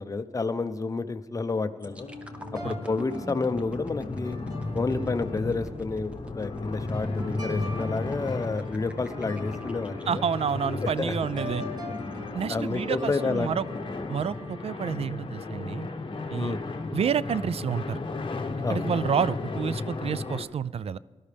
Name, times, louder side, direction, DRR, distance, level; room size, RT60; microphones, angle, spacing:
voice 1, 0.0-2.1 2.6-4.4 4.7-10.2 10.8-11.1 12.5-13.5 16.4-16.6 18.6-18.8, left 3 dB, 30° left, 8 dB, 0.7 m, -30 dB
sound 1, 1.8-20.4, left 3 dB, 45° left, 1.0 m, -35 dB
sound 2, 1.8-11.6 12.1-12.3, equal, 10° right, 1.0 m, -44 dB
sound 3, 2.0-14.6, left 1 dB, 35° right, 3.0 m, -43 dB
voice 2, 10.1-11.6 12.3-13.7 14.1-15.9 16.3-16.6 16.9-18.0 18.7-21.0, right 7 dB, 55° right, 19 dB, 0.4 m, -29 dB
18.0 x 12.0 x 3.4 m, 1.5 s
wide cardioid pair, 95°, 12 cm